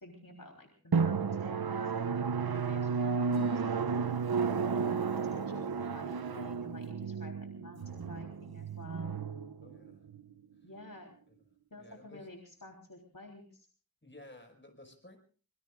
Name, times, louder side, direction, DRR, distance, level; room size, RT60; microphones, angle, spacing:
voice 1, 0.0-4.0 4.7-9.2 10.6-11.2 11.7-13.7, left 1 dB, 60° left, 1 dB, 3.7 m, -50 dB
Drum, 0.9-10.2, right 5 dB, 75° right, 0.7 m, -33 dB
sound 1, 3.3-7.6, left 2 dB, 80° left, 5.6 m, -53 dB
voice 2, 9.6-10.1 10.6-10.7 11.3-11.4 11.7-12.3 14.0-15.2, left 1 dB, 30° left, 3 dB, 5.3 m, -54 dB
25.5 x 22.5 x 2.5 m, 0.42 s
wide cardioid pair, 45°, 37 cm